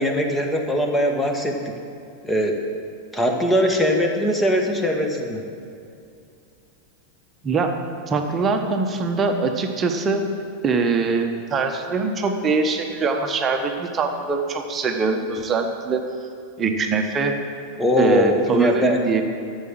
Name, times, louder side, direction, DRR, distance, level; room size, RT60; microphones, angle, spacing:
voice 1, 0.0-1.5 2.2-2.5 3.1-5.4 17.8-19.0, equal, 10° left, 2 dB, 1.7 m, -21 dB
voice 2, 8.1-10.2 10.6-16.0 16.6-17.3 18.0-19.2, right 4 dB, 25° right, 4 dB, 1.2 m, -23 dB
13.5 x 7.3 x 7.8 m, 2.5 s
figure-of-eight pair, 90°, 0 cm